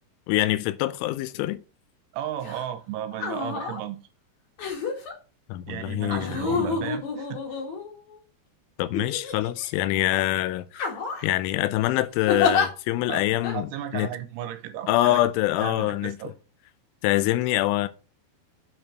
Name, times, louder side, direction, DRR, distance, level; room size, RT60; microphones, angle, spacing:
voice 1, 0.3-1.6 5.5-6.7 8.8-10.9 11.2-14.1 14.9-16.3 17.0-17.9, left 16 dB, 85° left, 3.1 m, -25 dB
voice 2, 2.1-4.0 5.7-7.4 9.0-9.1 13.1-13.2 13.5-15.2 15.6-16.3, right 11 dB, 80° right, 3.3 m, -34 dB
sound 1, 2.4-2.6 3.1-3.8 4.6-5.1 6.1-8.2 8.9-9.7 10.1-10.3 10.7-11.3 12.3-12.7 13.4-13.6, left 5 dB, 50° left, 2.4 m, -28 dB
8.6 x 4.5 x 5.1 m
omnidirectional pair, 5.5 m